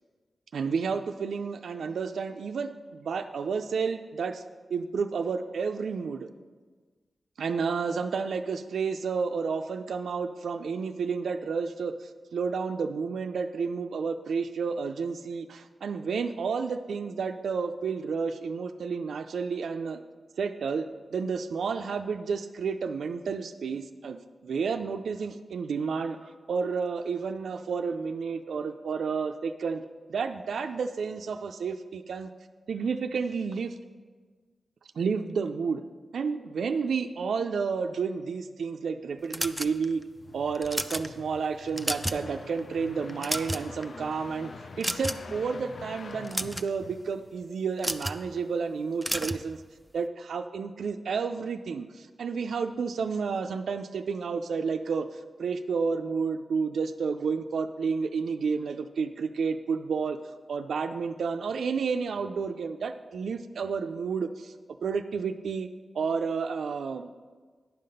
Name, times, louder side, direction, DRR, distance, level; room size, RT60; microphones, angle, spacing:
voice 1, 0.5-4.4 4.7-6.3 7.4-20.0 20.4-20.9 21.1-26.2 26.5-29.8 30.1-32.3 32.7-33.7 35.0-35.8 36.1-40.0 40.3-49.6 49.9-55.1 55.4-60.2 60.5-64.5 64.8-65.7 65.9-67.1, right 5 dB, 90° right, 7 dB, 0.4 m, -31 dB
sound 1, 39.3-40.0 40.5-41.1 41.6-42.3 42.6-42.7 43.1-43.8 44.8-45.3 46.1-46.7 47.8-48.2 49.0-49.4, right 1 dB, 5° right, 0.4 m, -31 dB
sound 2, 39.9-47.5, left 4 dB, 65° left, 0.4 m, -45 dB
10.5 x 5.8 x 5.3 m, 1.5 s
wide cardioid pair, 105°, 0 cm